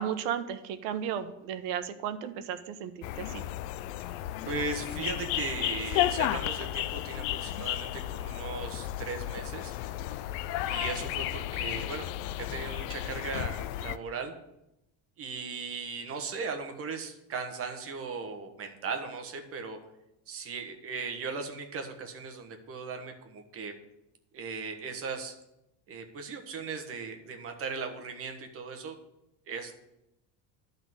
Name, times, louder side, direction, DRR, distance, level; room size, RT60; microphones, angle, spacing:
voice 1, 0.0-3.4, right 9 dB, 75° right, 9 dB, 1.0 m, -34 dB
sound 1, 3.0-14.0, left 14 dB, 85° left, 0.5 m, -33 dB
voice 2, 4.1-9.7 10.6-12.1 12.4-14.4 15.2-19.8 20.3-23.8 24.3-25.3 25.9-29.0 29.5-29.7, right 4 dB, 35° right, 5 dB, 1.2 m, -37 dB
11.5 x 4.0 x 7.6 m, 0.88 s
cardioid pair, 160°, 39 cm